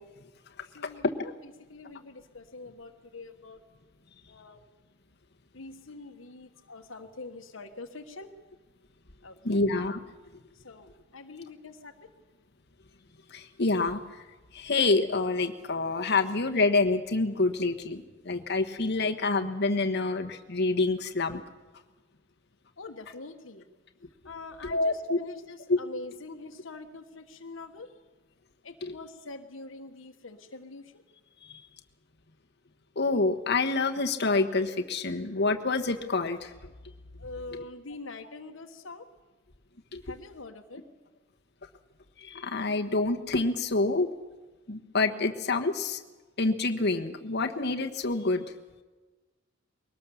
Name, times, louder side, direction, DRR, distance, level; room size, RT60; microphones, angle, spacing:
voice 1, 0.7-1.3 1.7-3.6 4.3-4.6 5.5-8.3 9.2-9.6 10.5-12.1 22.8-23.7 24.2-27.9 28.6-31.0 37.2-39.1 40.0-40.8, left 3 dB, 75° left, 5 dB, 1.4 m, -44 dB
voice 2, 9.4-10.0 13.3-14.0 14.5-21.4 24.7-25.2 25.7-25.8 28.8-28.9 32.9-36.5 39.9-40.0 42.2-44.1 44.7-46.0 46.4-48.4, left 3 dB, 55° left, 4 dB, 1.3 m, -27 dB
22.0 x 18.5 x 7.1 m, 1.3 s
head